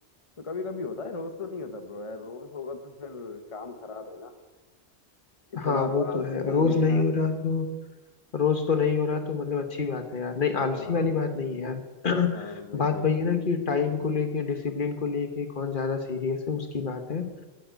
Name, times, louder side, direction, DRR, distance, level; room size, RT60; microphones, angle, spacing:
voice 1, 0.4-4.3 5.5-7.0 10.7-11.2 12.2-13.1, left 3 dB, 35° left, 7 dB, 0.8 m, -36 dB
voice 2, 5.6-7.7 8.3-17.3, left 5 dB, 50° left, 7 dB, 1.2 m, -27 dB
9.2 x 8.6 x 9.2 m, 1.2 s
omnidirectional pair, 1.1 m